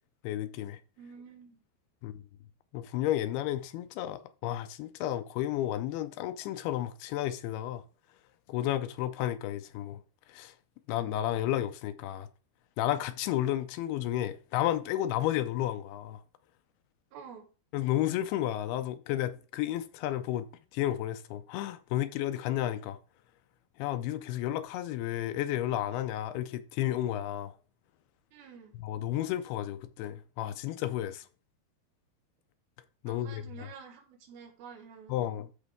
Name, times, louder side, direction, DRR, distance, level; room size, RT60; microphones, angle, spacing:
voice 1, 0.2-0.8 2.0-2.2 2.7-7.8 8.5-10.0 10.3-10.5 10.9-12.3 12.8-16.2 17.7-20.5 20.7-23.0 23.8-27.5 28.7-31.3 33.0-33.4 35.1-35.5, left 13 dB, 80° left, 2.5 m, -32 dB
voice 2, 1.0-1.6 17.1-17.5 28.3-28.8 33.0-35.3, right 6 dB, 70° right, 3.2 m, -49 dB
13.5 x 4.5 x 3.6 m
omnidirectional pair, 4.7 m